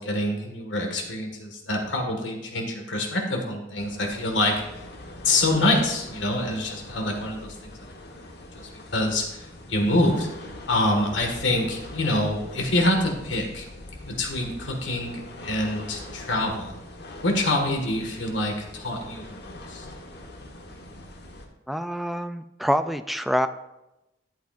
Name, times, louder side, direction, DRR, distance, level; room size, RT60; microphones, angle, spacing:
voice 1, 0.0-4.6 5.2-7.7 8.1-8.2 8.5-10.3 10.7-13.6 14.0-16.7 17.2-19.8, left 1 dB, 85° left, 2 dB, 1.8 m, -26 dB
sound 1, 3.8-21.5, left 1 dB, 60° left, 1.3 m, -42 dB
voice 2, 21.7-23.5, equal, ahead, 10 dB, 0.3 m, -26 dB
12.5 x 8.2 x 2.5 m, 0.94 s
head